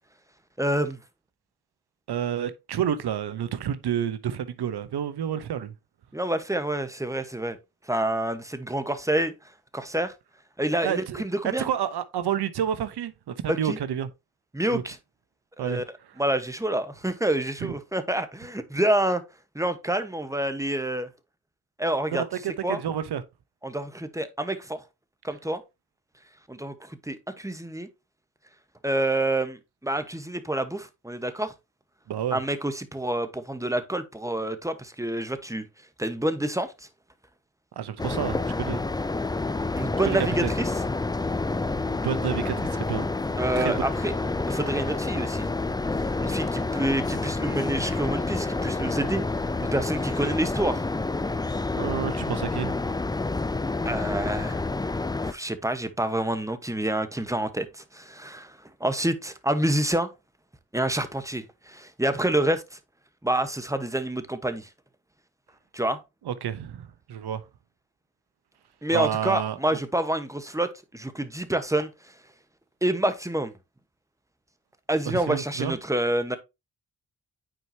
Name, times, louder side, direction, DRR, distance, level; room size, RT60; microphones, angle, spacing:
voice 1, 0.6-1.0 6.1-7.6 7.9-9.3 9.7-10.1 10.6-11.7 13.5-13.8 14.5-15.0 15.6-15.8 16.2-19.2 19.5-21.1 21.8-22.2 22.6-22.8 23.6-24.8 25.2-25.6 26.5-27.9 28.8-31.5 32.3-35.7 36.0-36.7 39.7-40.7 43.4-44.1 44.5-45.5 46.2-49.2 49.6-50.8 53.8-54.6 55.2-60.1 60.7-62.8 63.2-64.7 65.7-66.0 68.8-71.9 72.8-73.5 74.9-76.4, right 1 dB, 10° right, 1.1 m, -27 dB
voice 2, 2.1-5.7 10.8-11.2 11.6-14.1 14.7-14.8 15.6-15.8 17.6-17.7 22.1-23.2 32.1-32.4 37.8-38.8 40.0-40.5 41.8-43.1 43.6-43.7 51.8-52.8 66.2-67.4 68.9-69.8 75.1-75.8, right 9 dB, 75° right, 0.9 m, -29 dB
sound 1, 38.0-55.3, left 3 dB, 10° left, 0.4 m, -28 dB
9.0 x 4.7 x 2.8 m
cardioid pair, 45°, 39 cm